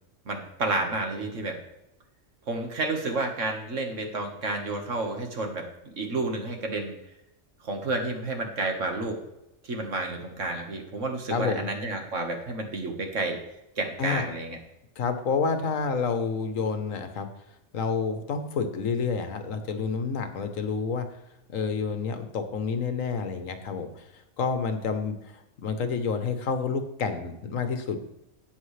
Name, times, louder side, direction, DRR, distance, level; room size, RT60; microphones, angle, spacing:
voice 1, 0.3-1.6 2.5-7.0 7.6-9.2 9.6-13.4 13.8-14.6, right 2 dB, 65° right, 3 dB, 1.8 m, -30 dB
voice 2, 11.3-11.7 14.0-14.2 15.0-17.3 17.7-21.1 21.5-24.0 24.4-28.0, left 5 dB, 75° left, 8 dB, 1.4 m, -29 dB
13.5 x 8.6 x 3.3 m, 0.88 s
omnidirectional pair, 1.4 m